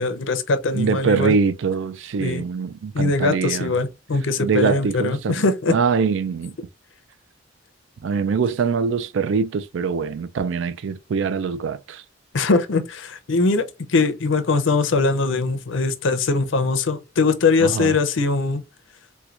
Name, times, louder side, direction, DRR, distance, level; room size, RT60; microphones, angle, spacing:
voice 1, 0.0-1.4 2.2-2.4 2.9-5.8 12.3-18.6, left 3 dB, 75° left, 0.6 m, -21 dB
voice 2, 0.7-3.7 4.4-6.6 8.0-12.0 17.6-18.0, right 5 dB, 70° right, 0.4 m, -23 dB
4.4 x 2.2 x 2.4 m
head